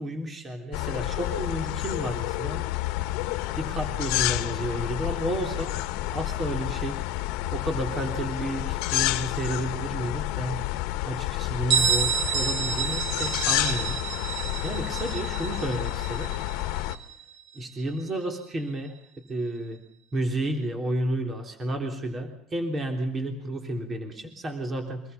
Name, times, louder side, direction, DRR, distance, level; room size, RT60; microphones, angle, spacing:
voice 1, 0.0-2.6 3.6-5.7 6.1-7.0 7.5-10.6 11.0-14.0 14.6-16.3 16.7-16.9 17.6-18.9 19.3-19.8 20.1-25.0, right 1 dB, 20° right, 4 dB, 3.4 m, -31 dB
sound 1, 0.7-17.0, left 16 dB, 75° left, 1.5 m, -30 dB
Bell, 11.7-17.2, right 7 dB, 45° right, 3.1 m, -29 dB
25.5 x 19.5 x 7.0 m, 0.68 s
cardioid pair, 165°, 0 cm